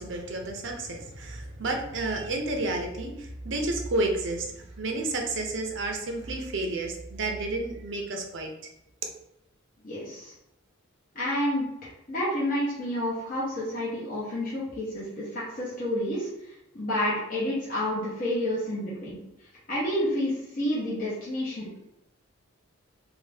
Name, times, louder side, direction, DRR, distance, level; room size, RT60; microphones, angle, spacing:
voice 1, 0.0-8.5, right 2 dB, 60° right, 2 dB, 0.6 m, -31 dB
voice 2, 9.8-10.3 11.1-19.2 19.7-21.8, left 1 dB, 40° left, -8 dB, 0.9 m, -30 dB
2.7 x 2.7 x 3.3 m, 0.86 s
head